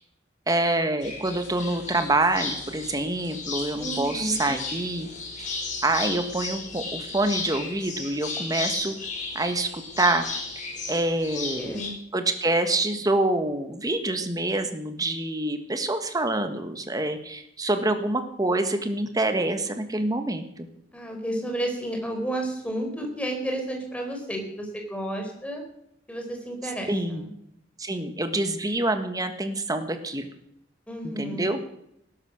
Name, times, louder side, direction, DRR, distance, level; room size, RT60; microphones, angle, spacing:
voice 1, 0.5-5.1 5.4-5.5 5.8-8.9 9.3-10.2 10.9-11.8 12.1-20.7 26.9-27.2 27.8-30.3 31.0-31.6, right 2 dB, 20° right, 8 dB, 1.6 m, -26 dB
sound 1, 1.0-11.9, left 3 dB, 45° left, 5.5 m, -34 dB
voice 2, 3.8-4.4 11.3-12.0 20.9-25.6 26.1-27.3 30.9-31.5, right 1 dB, 5° left, 2 dB, 4.2 m, -32 dB
19.0 x 10.5 x 6.4 m, 0.77 s
head